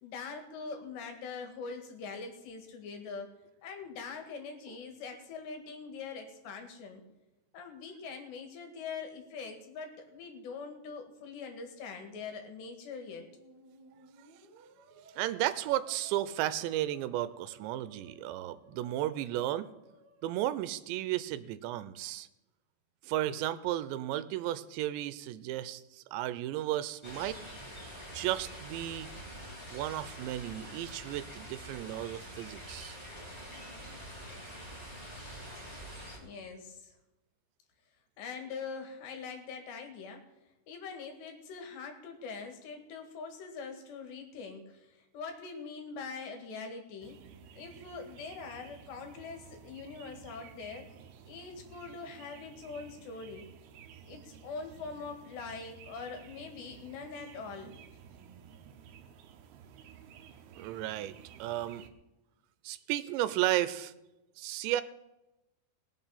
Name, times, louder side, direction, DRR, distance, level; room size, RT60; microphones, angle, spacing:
voice 1, 0.0-3.3 3.6-7.0 7.5-13.3 36.2-37.0 38.2-40.3 40.7-47.2 47.5-50.9 51.3-53.5 54.0-57.7, left 5 dB, 75° left, 4 dB, 4.0 m, -43 dB
Musical instrument, 13.0-21.0, right 2 dB, 35° right, 1.8 m, -59 dB
voice 2, 15.2-19.7 20.2-22.3 23.0-27.7 28.1-29.1 29.7-33.0 60.6-61.8 62.6-63.9 64.4-64.8, right 14 dB, 90° right, 14 dB, 3.0 m, -34 dB
sound 1, 27.0-36.2, equal, 5° left, 2.5 m, -46 dB
sound 2, 47.0-61.9, right 8 dB, 70° right, 2.7 m, -53 dB
19.5 x 7.6 x 5.8 m, 0.99 s
omnidirectional pair, 5.0 m